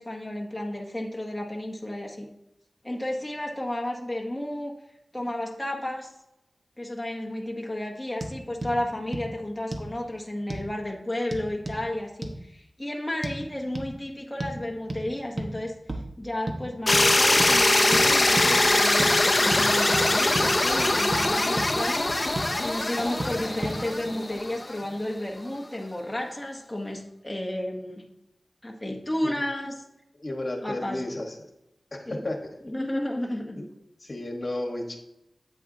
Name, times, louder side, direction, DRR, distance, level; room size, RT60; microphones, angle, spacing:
voice 1, 0.0-2.3 2.8-4.7 5.1-6.1 6.8-28.1 28.6-29.7 30.6-31.0 32.1-32.2 32.6-33.6, left 1 dB, 10° left, -1 dB, 1.0 m, -32 dB
sound 1, 8.2-8.3 8.6-8.7 9.1-9.3 9.7-9.9 10.5-10.7 11.3-11.8 12.2-12.4 13.2-13.4 13.7-13.9 14.4-14.6 14.9-15.0 15.4-15.5 15.9-16.1 16.5-16.6 16.9-17.1 17.4-17.5 17.9-18.0 18.4-18.5 19.0-19.1 19.5-19.6 19.9-20.1 20.3-20.5 20.8-21.2 21.6-21.7 22.1-22.5 23.2-23.3 23.6-23.8, right 1 dB, 45° right, 1.1 m, -32 dB
sound 2, 16.9-24.9, left 2 dB, 30° left, 0.6 m, -22 dB
voice 2, 30.1-31.4 31.9-32.4 33.6-33.7 34.0-35.0, left 1 dB, 45° left, 2 dB, 1.3 m, -33 dB
8.2 x 8.1 x 2.7 m, 0.86 s
wide cardioid pair, 90°, 0 cm